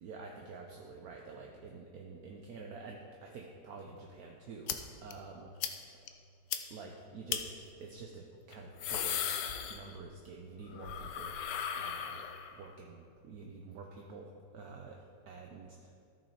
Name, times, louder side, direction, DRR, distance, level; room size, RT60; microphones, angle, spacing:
voice 1, 0.0-5.5 6.7-7.5 7.8-9.3 9.7-11.4 11.7-12.2 12.6-15.0 15.3-15.9, right 4 dB, 65° right, 1 dB, 1.2 m, -48 dB
sound 1, 4.7-4.8 5.1-5.2 5.6-5.7 6.1-6.2 6.5-6.6 7.3-7.4 8.5-10.2 10.5-12.7, left 9 dB, 90° left, 1.3 m, -36 dB
13.5 x 5.6 x 4.3 m, 2.4 s
omnidirectional pair, 1.8 m